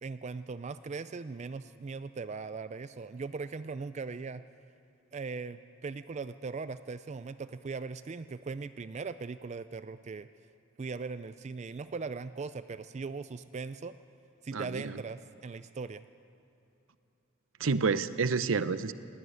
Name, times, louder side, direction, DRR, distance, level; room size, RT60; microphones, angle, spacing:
voice 1, 0.0-4.4 5.1-10.3 10.8-14.0 14.4-16.0, right 4 dB, 35° right, 13 dB, 0.4 m, -39 dB
voice 2, 14.5-15.0 17.6-18.9, right 4 dB, 70° right, 14 dB, 0.7 m, -29 dB
19.0 x 17.5 x 9.5 m, 2.8 s
head